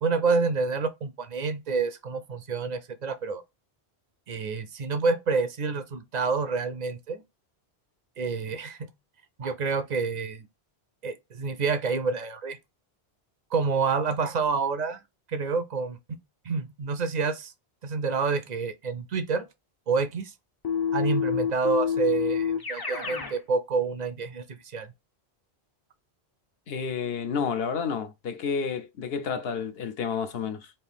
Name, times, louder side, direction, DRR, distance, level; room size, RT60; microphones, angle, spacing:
voice 1, 0.0-3.4 4.3-7.2 8.2-8.9 9.4-10.4 11.0-12.6 13.5-15.0 15.3-16.0 16.5-17.5 17.8-19.5 19.9-20.3 20.9-24.9, right 4 dB, 55° right, 0.5 m, -28 dB
Keyboard (musical), 20.6-23.4, left 7 dB, 30° left, 0.5 m, -28 dB
voice 2, 26.7-30.7, left 6 dB, 70° left, 0.8 m, -30 dB
4.2 x 2.7 x 3.4 m
omnidirectional pair, 1.1 m